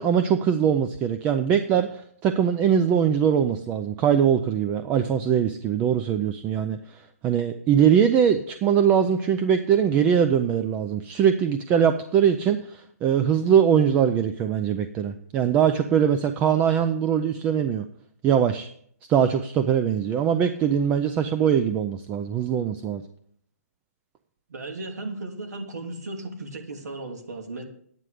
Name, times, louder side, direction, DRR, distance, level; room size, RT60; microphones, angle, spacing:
voice 1, 0.0-17.9 18.2-18.7 19.1-23.0, right 8 dB, 15° right, 9 dB, 0.4 m, -22 dB
voice 2, 24.5-27.6, right 2 dB, 85° right, 3 dB, 2.8 m, -35 dB
11.0 x 9.4 x 4.9 m, 0.64 s
hypercardioid pair, 160°, 9 cm